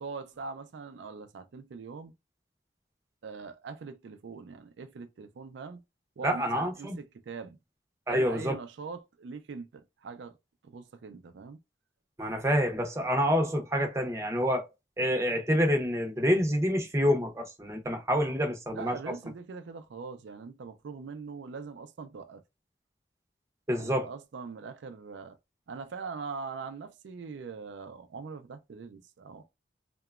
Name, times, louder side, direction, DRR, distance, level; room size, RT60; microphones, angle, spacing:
voice 1, 0.0-2.1 3.2-5.8 6.2-7.6 8.1-10.3 10.6-11.6 18.7-22.4 23.7-25.4 25.7-29.4, right 5 dB, 80° right, 0.4 m, -42 dB
voice 2, 6.2-7.0 8.1-8.5 12.2-14.7 15.0-19.0 23.7-24.1, equal, 15° right, 0.6 m, -27 dB
2.9 x 2.1 x 2.3 m
head